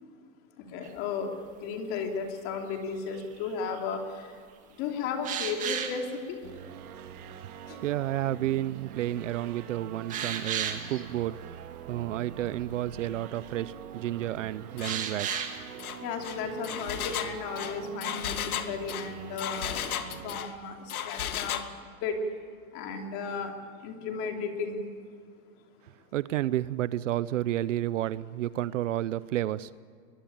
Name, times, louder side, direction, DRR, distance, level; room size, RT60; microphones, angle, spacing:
voice 1, 0.7-1.3 1.6-4.0 4.8-6.1 16.0-19.8 20.2-20.7 21.0-21.6 22.0-22.1 22.7-23.5 23.8-24.8, left 5 dB, 30° left, 3 dB, 3.1 m, -34 dB
sound 1, 0.8-0.9 3.1-3.8 5.2-6.0 8.9-9.0 9.5-9.6 10.1-11.0 12.6-12.7 12.9-13.3 14.8-15.6 19.0-19.2, right 8 dB, 15° right, 1.9 m, -33 dB
sound 2, 6.4-20.4, right 9 dB, 80° right, 2.0 m, -44 dB
voice 2, 7.8-11.4 11.9-15.4 26.1-29.7, right 13 dB, 60° right, 18 dB, 0.7 m, -31 dB
Engine, 14.8-15.0 15.3-15.5 15.8-20.5 20.9-21.7, left 10 dB, 75° left, 2.1 m, -35 dB
23.0 x 21.0 x 8.8 m, 2.1 s
supercardioid pair, 165°, 43 cm